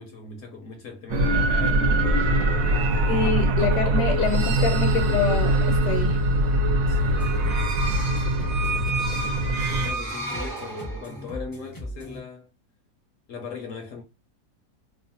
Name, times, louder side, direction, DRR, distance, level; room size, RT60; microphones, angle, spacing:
voice 1, 0.0-3.3 6.9-12.5 13.3-14.0, left 3 dB, 65° left, 0.8 m, -39 dB
sound 1, 1.1-9.9, right 1 dB, 65° right, 1.0 m, -22 dB
voice 2, 3.1-6.2, left 6 dB, 80° left, 1.2 m, -26 dB
sound 2, 7.1-12.2, equal, 25° left, 0.4 m, -38 dB
sound 3, 7.1-11.3, right 3 dB, 25° right, 0.6 m, -32 dB
2.9 x 2.0 x 2.6 m
omnidirectional pair, 1.8 m